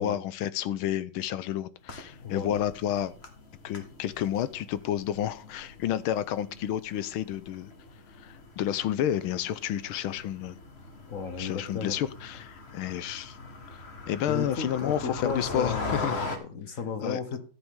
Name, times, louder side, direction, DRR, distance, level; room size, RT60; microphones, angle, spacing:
voice 1, 0.0-3.1 3.6-7.7 8.2-10.6 11.4-13.4 14.1-16.1 17.0-17.2, left 11 dB, 85° left, 1.6 m, -30 dB
sound 1, 1.8-16.4, left 2 dB, 35° left, 1.7 m, -41 dB
voice 2, 2.2-2.6 11.1-12.0 14.3-17.4, left 5 dB, 50° left, 1.2 m, -34 dB
13.0 x 7.9 x 3.7 m
omnidirectional pair, 2.3 m